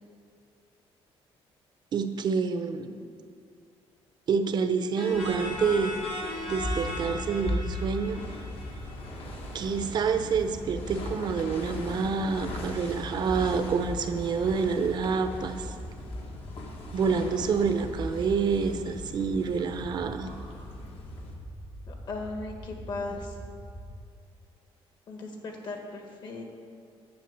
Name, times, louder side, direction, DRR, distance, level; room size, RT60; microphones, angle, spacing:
voice 1, 1.9-3.0 4.3-8.2 9.5-15.7 16.9-20.3, right 5 dB, 45° right, 8 dB, 0.7 m, -28 dB
sound 1, 4.9-9.5, left 1 dB, 80° left, 2.5 m, -38 dB
sound 2, 5.1-21.3, left 1 dB, 60° left, 1.7 m, -39 dB
sound 3, 6.6-24.1, right 1 dB, ahead, 0.5 m, -43 dB
voice 2, 21.9-23.4 25.1-26.4, left 3 dB, 45° left, 2 dB, 1.6 m, -37 dB
10.5 x 6.3 x 8.2 m, 2.4 s
cardioid pair, 175°, 10 cm